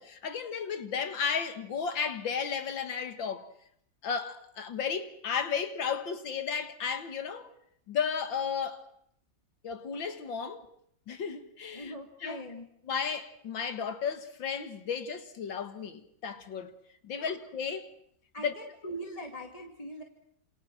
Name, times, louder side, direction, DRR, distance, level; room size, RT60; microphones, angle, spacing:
voice 1, 0.0-3.5 4.0-7.5 7.9-8.9 9.6-10.7 11.1-12.4 12.9-16.7 17.0-17.9 18.4-18.5, left 6 dB, 85° left, 2.5 m, -34 dB
voice 2, 11.7-12.7 17.2-17.3 18.3-20.0, right 1 dB, 20° left, 2.3 m, -42 dB
28.0 x 27.5 x 6.2 m
omnidirectional pair, 2.0 m